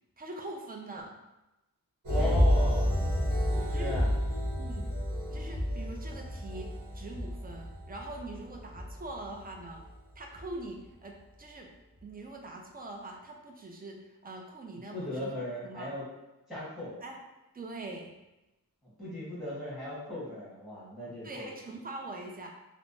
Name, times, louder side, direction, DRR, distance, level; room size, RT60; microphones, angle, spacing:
voice 1, 0.2-1.1 3.7-4.0 4.6-4.9 5.3-9.8 10.2-11.7 12.0-15.3 15.6-15.9 17.0-17.2 17.5-18.1 21.2-22.5, right 2 dB, 25° right, 1 dB, 0.4 m, -43 dB
sound 1, 2.0-9.9 10.3-10.5, equal, 55° right, 1.0 m, -30 dB
voice 2, 2.1-2.9 3.5-4.1 14.9-16.0 16.5-17.0 19.0-21.5, left 1 dB, ahead, -8 dB, 1.3 m, -37 dB
3.2 x 2.0 x 2.6 m, 0.97 s
wide cardioid pair, 100°, 35 cm